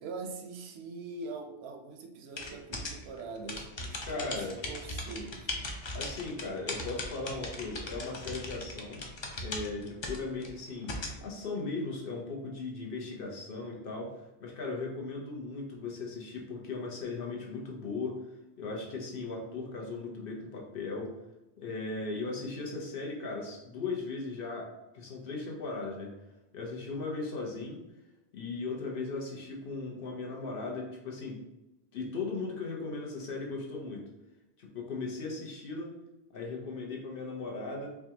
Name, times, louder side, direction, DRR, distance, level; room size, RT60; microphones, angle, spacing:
voice 1, 0.0-5.5, right 4 dB, 80° right, 4 dB, 0.8 m, -42 dB
sound 1, 2.4-11.2, left 2 dB, 45° left, 0.4 m, -39 dB
voice 2, 4.0-4.5 5.9-9.0 9.4-18.2 18.6-21.2 21.6-26.2 26.5-27.8 28.3-31.4 31.9-34.0 34.6-35.9 36.3-37.9, left 3 dB, 65° left, -1 dB, 0.9 m, -37 dB
4.6 x 2.3 x 2.7 m, 0.98 s
omnidirectional pair, 1.1 m